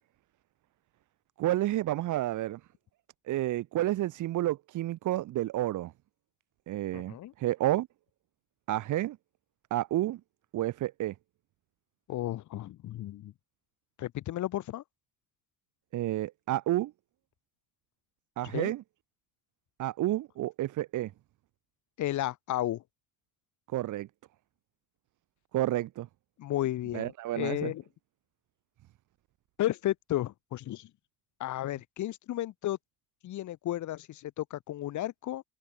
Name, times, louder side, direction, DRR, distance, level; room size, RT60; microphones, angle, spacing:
voice 1, 1.4-2.6 3.3-5.9 6.7-7.9 8.7-9.2 9.7-10.2 10.5-11.1 15.9-16.9 18.4-18.8 19.8-21.1 23.7-24.1 25.5-26.1 26.9-27.7, right 15 dB, 75° right, 3.9 m, -30 dB
voice 2, 6.9-7.3 12.1-13.3 14.0-14.8 18.4-18.7 22.0-22.8 26.4-27.8 29.6-30.9 31.4-32.8 33.2-35.4, left 14 dB, 70° left, 3.4 m, -33 dB
cardioid pair, 110°, 30 cm